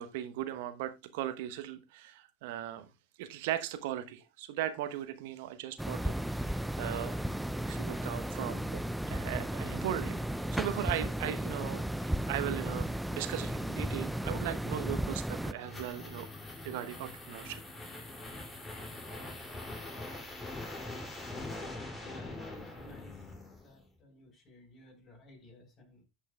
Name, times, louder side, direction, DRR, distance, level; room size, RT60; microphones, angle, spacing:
voice 1, 0.0-2.9 3.2-7.2 7.7-16.3 16.6-17.6, right 12 dB, 65° right, 0.9 m, -38 dB
sound 1, 5.8-15.5, right 1 dB, 5° right, 0.4 m, -34 dB
sound 2, 15.3-23.9, left 2 dB, 15° left, 2.7 m, -43 dB
voice 2, 22.0-23.3 23.6-26.0, left 1 dB, 35° left, 4.2 m, -55 dB
16.5 x 5.5 x 2.3 m
hypercardioid pair, 85°, 0 cm